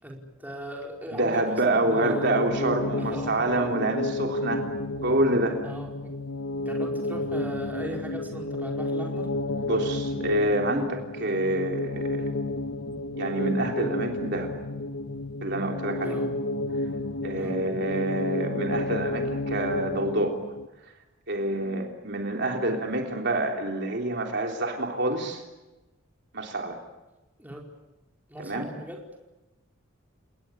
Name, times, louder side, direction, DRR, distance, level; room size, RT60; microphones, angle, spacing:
voice 1, 0.0-1.4 1.7-2.4 3.0-3.6 5.6-6.1 6.6-9.3 16.0-16.3 17.3-17.6 27.4-27.7 28.3-29.0, equal, 10° right, -1 dB, 4.9 m, -39 dB
voice 2, 1.1-4.7 5.0-5.6 9.6-12.3 13.2-14.5 15.4-16.2 17.2-20.4 20.8-20.9 21.3-25.4 26.3-26.8 28.4-28.7, right 2 dB, 55° right, 2 dB, 3.5 m, -27 dB
sound 1, 1.9-20.7, left 2 dB, 75° left, 1.3 m, -31 dB
29.5 x 19.5 x 8.6 m, 1.0 s
head